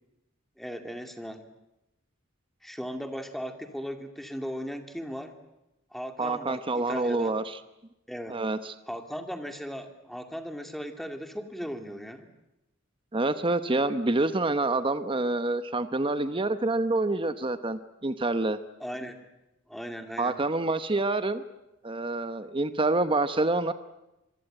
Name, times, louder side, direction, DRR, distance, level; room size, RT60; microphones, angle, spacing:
voice 1, 0.6-1.5 2.6-5.3 5.9-7.3 8.1-8.4 8.9-12.3 18.8-19.2 19.7-20.4, equal, ahead, 6 dB, 2.2 m, -37 dB
voice 2, 6.2-7.6 8.3-8.7 13.1-18.6 20.2-21.4 21.8-23.7, right 2 dB, 25° right, 11 dB, 0.9 m, -27 dB
25.5 x 22.5 x 9.0 m, 0.94 s
head